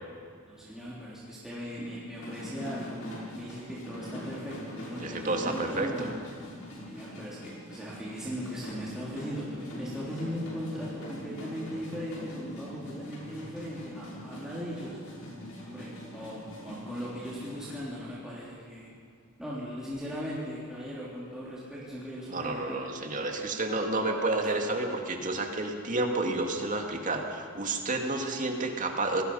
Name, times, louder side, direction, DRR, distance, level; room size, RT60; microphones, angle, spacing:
voice 1, 0.5-3.0 3.3-6.1 6.8-15.0 15.6-18.9 19.4-24.5, equal, 5° right, -8 dB, 3.5 m, -39 dB
sound 1, 2.1-17.8, equal, 75° left, 6.4 m, -42 dB
voice 2, 5.0-6.1 22.3-29.2, right 2 dB, 35° right, 3 dB, 2.2 m, -30 dB
27.5 x 19.0 x 5.6 m, 2.2 s
head